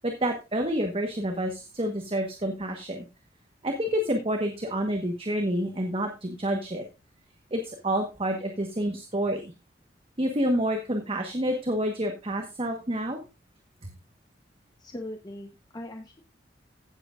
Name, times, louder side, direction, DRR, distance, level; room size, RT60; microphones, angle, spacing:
voice 1, 0.0-3.0 3.6-6.8 7.5-9.5 10.2-13.2, equal, 35° right, 4 dB, 1.3 m, -28 dB
voice 2, 14.8-16.2, left 1 dB, 25° left, 4 dB, 1.1 m, -40 dB
16.0 x 7.9 x 2.5 m, 0.27 s
head